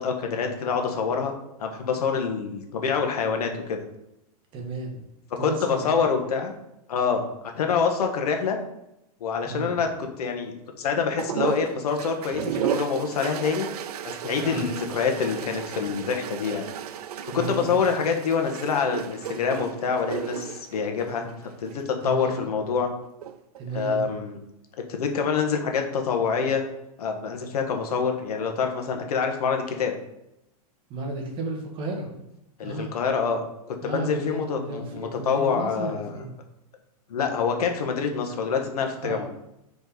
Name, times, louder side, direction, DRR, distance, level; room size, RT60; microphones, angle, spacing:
voice 1, 0.0-1.3 1.6-3.8 5.4-6.5 6.9-8.6 9.2-13.7 14.0-16.6 17.3-21.3 21.6-22.9 23.7-24.4 24.9-26.6 27.0-29.9 32.6-33.4 33.7-36.1 37.1-39.3, left 5 dB, 80° left, 4 dB, 1.3 m, -26 dB
voice 2, 4.5-5.0 5.4-6.1 9.4-10.0 14.3-14.7 17.3-17.7 22.0-22.4 23.6-24.0 30.9-32.1 32.6-32.9 33.8-36.3 39.0-39.2, right 2 dB, 25° right, 1 dB, 1.3 m, -33 dB
sound 1, 11.2-21.9 23.0-23.6, right 9 dB, 80° right, 0.6 m, -34 dB
4.8 x 4.4 x 5.4 m, 0.87 s
supercardioid pair, 150°, 19 cm